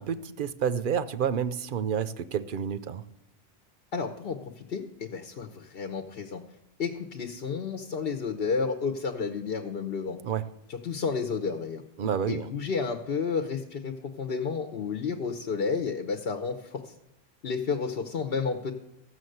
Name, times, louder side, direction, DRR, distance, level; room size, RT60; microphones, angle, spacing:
voice 1, 0.0-3.0 10.2-10.4 12.0-12.5, right 8 dB, 60° right, 0.7 m, -29 dB
voice 2, 3.9-6.4 6.8-10.2 10.7-11.8 12.3-16.9 17.4-18.7, left 5 dB, 70° left, 1.0 m, -31 dB
14.5 x 6.4 x 7.8 m
omnidirectional pair, 1.1 m